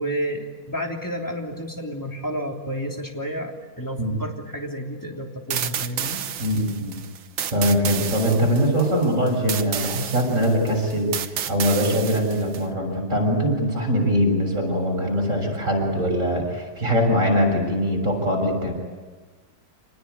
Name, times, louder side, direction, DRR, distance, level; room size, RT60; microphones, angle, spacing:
voice 1, 0.0-6.2, equal, 10° left, 1 dB, 3.2 m, -31 dB
sound 1, 5.5-12.6, right 9 dB, 90° right, 1.8 m, -31 dB
voice 2, 6.4-7.0 7.5-18.7, equal, 40° right, 2 dB, 7.2 m, -22 dB
27.5 x 19.5 x 9.7 m, 1.3 s
omnidirectional pair, 2.0 m